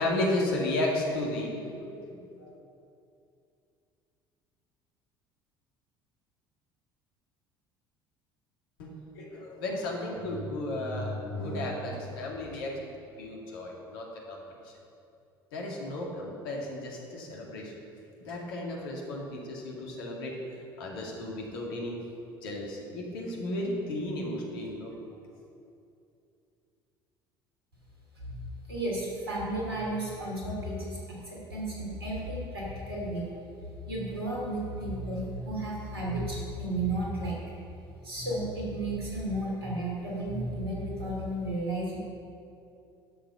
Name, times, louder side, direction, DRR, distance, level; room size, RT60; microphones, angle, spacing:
voice 1, 0.0-2.5 8.8-12.8 13.2-14.4 15.5-17.7 18.2-20.4 20.8-22.0 22.4-24.9, left 1 dB, 65° left, -2 dB, 2.2 m, -33 dB
voice 2, 28.1-37.6 38.0-42.0, right 1 dB, 80° right, -3 dB, 2.8 m, -33 dB
12.0 x 7.1 x 5.6 m, 2.6 s
figure-of-eight pair, 60°, 13 cm